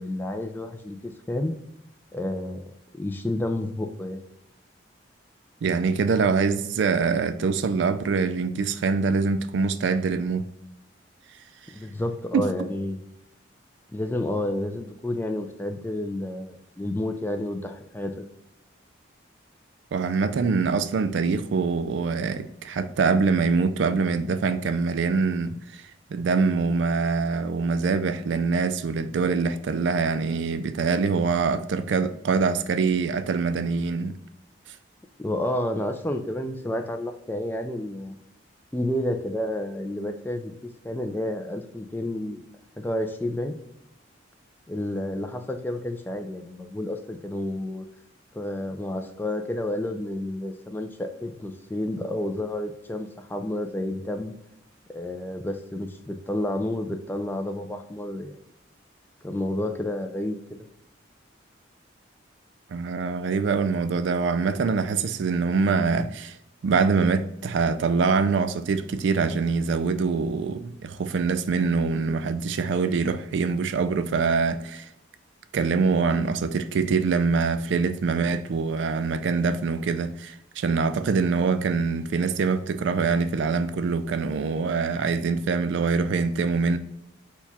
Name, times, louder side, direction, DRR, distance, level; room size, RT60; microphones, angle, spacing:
voice 1, 0.0-1.5 2.1-4.2 11.7-13.0 13.9-18.2 35.2-38.2 38.7-40.5 40.8-42.4 42.8-43.6 44.7-47.9 48.3-54.3 54.9-58.4 59.2-60.7, left 1 dB, 10° left, 0.3 m, -30 dB
voice 2, 5.6-10.5 12.3-12.4 19.9-25.8 26.1-34.2 62.7-66.4 66.6-74.9 75.5-86.8, right 4 dB, 65° right, 0.3 m, -24 dB
4.5 x 2.3 x 4.0 m
head